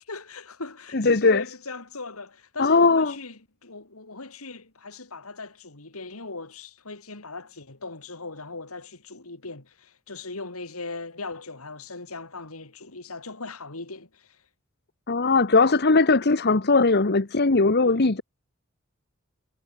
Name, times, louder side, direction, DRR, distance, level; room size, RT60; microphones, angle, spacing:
voice 1, 0.1-14.4 17.8-18.1, left 3 dB, 90° left, 3.2 m, -39 dB
voice 2, 0.9-1.4 2.6-3.1 15.1-18.2, left 3 dB, 50° left, 1.2 m, -19 dB
head